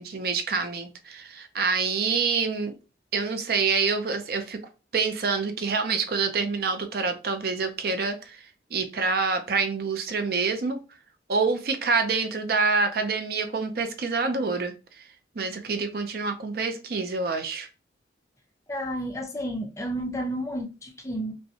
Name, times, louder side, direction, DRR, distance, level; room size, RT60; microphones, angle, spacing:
voice 1, 0.0-2.7 3.1-4.6 4.9-8.4 8.7-10.8 11.3-14.7 15.4-17.7, right 4 dB, 60° right, 0.5 m, -26 dB
voice 2, 18.7-21.3, equal, 15° left, 0.6 m, -31 dB
5.3 x 2.2 x 2.8 m
head